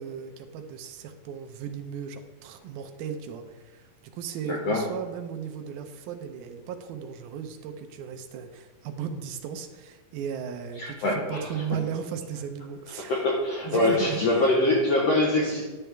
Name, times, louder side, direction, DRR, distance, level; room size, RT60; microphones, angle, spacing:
voice 1, 0.0-13.2 13.6-14.6, right 7 dB, 80° right, 6 dB, 2.5 m, -36 dB
voice 2, 4.4-4.9 10.8-11.6 13.0-15.7, left 2 dB, 85° left, 0 dB, 1.4 m, -24 dB
11.0 x 8.8 x 3.4 m, 1.4 s
omnidirectional pair, 4.3 m